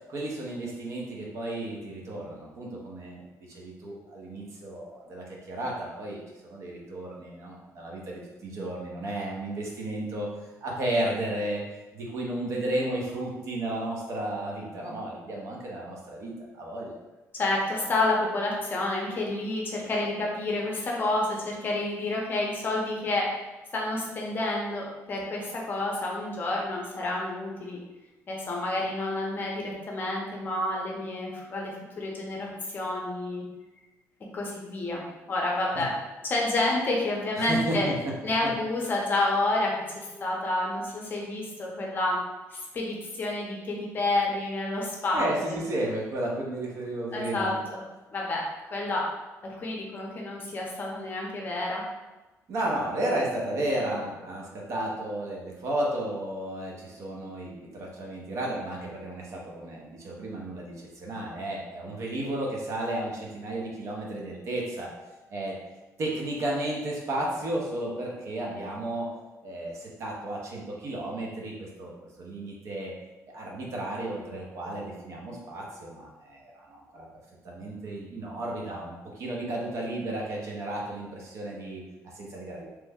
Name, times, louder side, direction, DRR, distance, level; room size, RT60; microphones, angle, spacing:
voice 1, 0.0-10.3 10.6-11.6 11.9-17.0 35.7-35.9 37.4-37.9 40.1-40.2 45.1-47.5 52.5-64.9 65.3-65.6 66.0-69.1 69.4-71.9 72.2-72.9 73.3-77.1 77.4-82.7, right 1 dB, 55° right, -2 dB, 0.7 m, -33 dB
voice 2, 17.3-23.3 23.7-27.8 28.3-32.5 32.7-33.4 34.3-35.0 35.3-35.9 36.2-37.9 38.2-42.2 42.5-45.6 47.1-47.8 48.1-48.4 48.7-49.1 49.4-51.8, left 2 dB, 35° left, -2 dB, 0.6 m, -29 dB
3.0 x 2.1 x 3.5 m, 1.1 s
cardioid pair, 150°, 6 cm